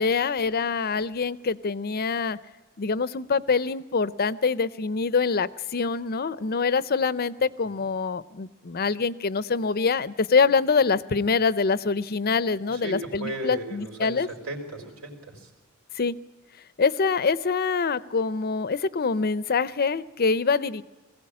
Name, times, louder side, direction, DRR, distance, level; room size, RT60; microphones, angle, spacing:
voice 1, 0.0-2.4 2.8-14.3 16.0-16.2 16.8-20.8, left 5 dB, 45° left, 17 dB, 0.6 m, -25 dB
voice 2, 12.7-15.5, right 2 dB, 80° right, 2 dB, 4.6 m, -36 dB
20.5 x 16.0 x 8.5 m, 1.3 s
head